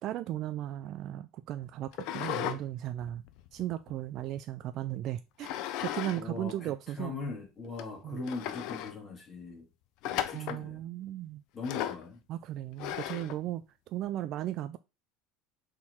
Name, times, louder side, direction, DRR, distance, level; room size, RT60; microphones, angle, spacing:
voice 1, 0.0-3.2 3.5-5.5 5.8-7.1 8.0-8.2 10.3-11.4 12.3-14.8, right 13 dB, 45° right, 0.4 m, -36 dB
sound 1, 1.9-2.6 3.0-4.4 5.4-6.2 6.5-6.6 7.3-7.4 7.8-7.9 8.2-8.9 10.0-10.6 11.6-12.1 12.8-13.4, left 11 dB, 55° left, 0.7 m, -36 dB
voice 2, 6.2-9.7 10.1-10.8 11.5-12.2, left 4 dB, 25° left, 2.1 m, -40 dB
6.3 x 3.8 x 4.4 m
cardioid pair, 150°, 0 cm